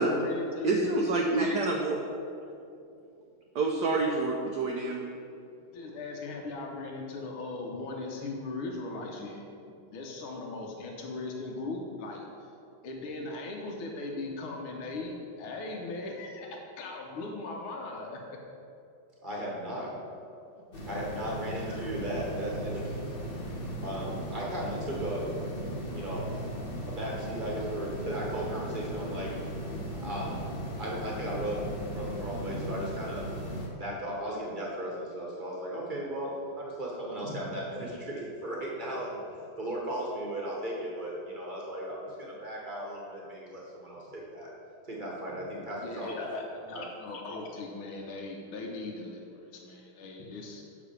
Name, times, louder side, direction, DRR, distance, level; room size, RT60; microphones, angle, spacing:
voice 1, 0.0-1.5 5.7-12.2 12.8-18.4 20.6-20.7 45.8-50.6, left 2 dB, 80° left, 0 dB, 1.7 m, -38 dB
voice 2, 0.6-2.0 3.5-5.0, right 3 dB, 70° right, 0 dB, 1.0 m, -27 dB
voice 3, 19.2-19.9 20.8-23.0 23.8-25.3 25.9-26.2 26.8-29.3 29.8-30.4 30.8-33.3 33.8-39.2 39.6-44.5 44.9-46.2 46.7-46.8, right 1 dB, 30° right, -3 dB, 1.0 m, -36 dB
sound 1, 20.7-33.7, equal, 35° left, 1.0 m, -37 dB
6.0 x 5.1 x 6.8 m, 2.6 s
omnidirectional pair, 2.3 m